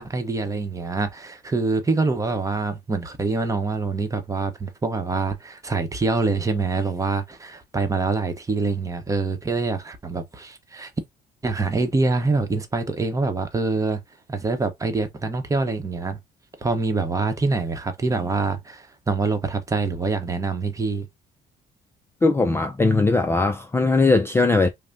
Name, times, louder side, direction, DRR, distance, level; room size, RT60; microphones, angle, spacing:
voice 1, 0.0-10.9 11.4-14.0 14.3-16.2 16.6-21.1, right 3 dB, 20° right, 0.9 m, -25 dB
voice 2, 22.2-24.7, left 3 dB, 15° left, 0.4 m, -19 dB
5.4 x 2.1 x 2.6 m
cardioid pair, 110°, 17 cm